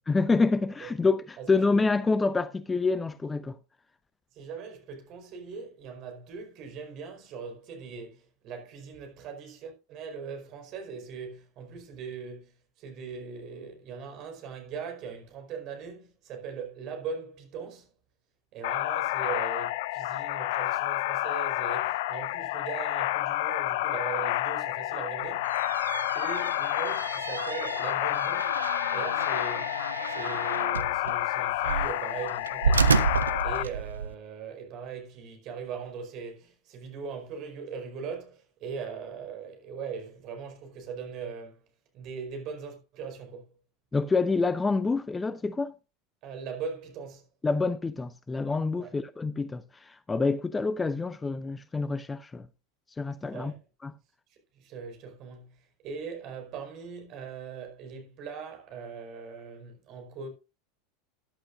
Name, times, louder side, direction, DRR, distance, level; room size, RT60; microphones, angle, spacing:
voice 1, 0.1-3.6 43.9-45.7 47.4-52.5 53.0-53.5 53.8-53.9, left 3 dB, 15° left, 0.7 m, -27 dB
voice 2, 4.3-17.9 18.5-25.5 26.1-28.6 28.9-41.6 41.9-43.5 46.2-47.2 48.8-48.9 53.3-53.6 54.3-60.3, right 6 dB, 45° right, 4.8 m, -40 dB
sound 1, 18.6-33.6, left 16 dB, 60° left, 0.6 m, -29 dB
sound 2, 25.3-34.1, right 5 dB, 85° right, 0.6 m, -30 dB
14.5 x 11.5 x 2.6 m
figure-of-eight pair, 85°, 0 cm